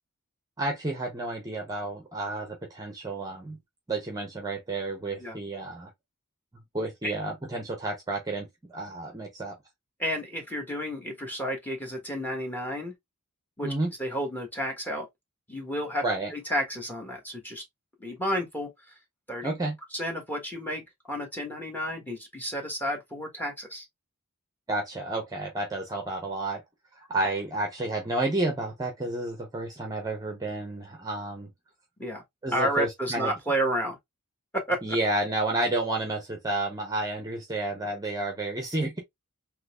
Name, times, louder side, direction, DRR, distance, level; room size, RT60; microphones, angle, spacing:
voice 1, 0.6-3.6 3.9-5.9 6.7-9.5 13.6-13.9 16.0-16.3 19.4-19.8 24.7-26.6 27.0-31.5 32.4-33.3 34.8-39.0, right 2 dB, 15° right, 0.7 m, -31 dB
voice 2, 10.0-12.9 13.6-13.7 14.0-15.1 15.5-16.0 16.3-17.6 18.0-18.7 19.3-19.5 19.9-23.8 32.0-32.2 32.5-34.0 34.5-34.8, equal, 10° left, 1.2 m, -31 dB
3.9 x 3.0 x 2.3 m
head